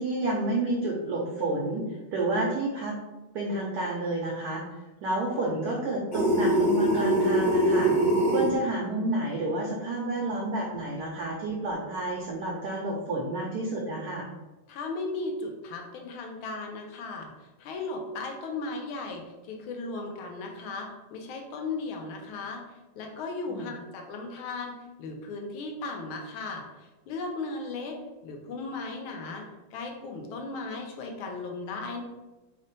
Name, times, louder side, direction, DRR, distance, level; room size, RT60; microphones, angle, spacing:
voice 1, 0.0-1.8 2.1-2.9 3.3-4.6 5.0-7.9 8.3-14.3 23.5-23.6, right 2 dB, 90° right, -2 dB, 0.8 m, -30 dB
sound 1, 6.1-8.5, right 1 dB, 55° left, 1.4 m, -23 dB
voice 2, 14.7-22.6 23.0-29.4 29.7-32.0, left 3 dB, 80° left, 2 dB, 1.4 m, -36 dB
3.6 x 2.1 x 3.9 m, 1.1 s
omnidirectional pair, 2.4 m